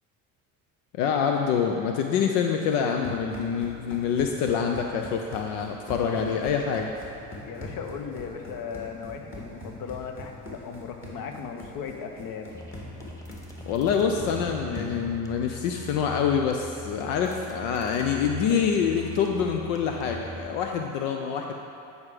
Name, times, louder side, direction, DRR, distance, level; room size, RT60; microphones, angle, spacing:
voice 1, 0.9-6.9 13.7-21.5, left 7 dB, 80° left, 3 dB, 0.6 m, -26 dB
Run, 2.9-15.1, left 2 dB, 30° left, 2.1 m, -42 dB
voice 2, 7.4-12.6, left 6 dB, 60° left, 4 dB, 0.9 m, -37 dB
sound 1, 12.5-20.5, right 1 dB, 10° left, 1.1 m, -42 dB
9.4 x 4.9 x 4.9 m, 2.6 s
supercardioid pair, 90°, 40 cm